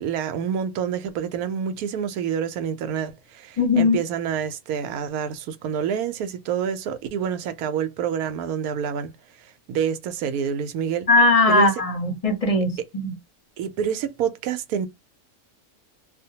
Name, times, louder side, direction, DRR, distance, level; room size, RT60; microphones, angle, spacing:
voice 1, 0.0-9.1 9.7-11.1 11.5-11.7 13.6-14.9, right 8 dB, 80° right, 1.1 m, -27 dB
voice 2, 3.6-4.0 11.1-13.2, left 2 dB, 35° left, 0.6 m, -19 dB
2.6 x 2.1 x 2.7 m
omnidirectional pair, 1.6 m